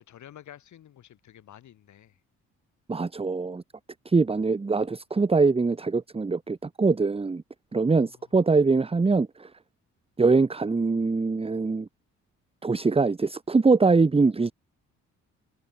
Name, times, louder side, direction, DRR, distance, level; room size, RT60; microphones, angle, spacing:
voice 1, 0.0-2.2 7.7-8.3, left 11 dB, 70° left, 7.8 m, -50 dB
voice 2, 2.9-3.6 4.0-7.4 7.7-9.5 10.2-11.9 12.6-14.5, right 4 dB, 20° right, 1.2 m, -23 dB
cardioid pair, 90°, 30 cm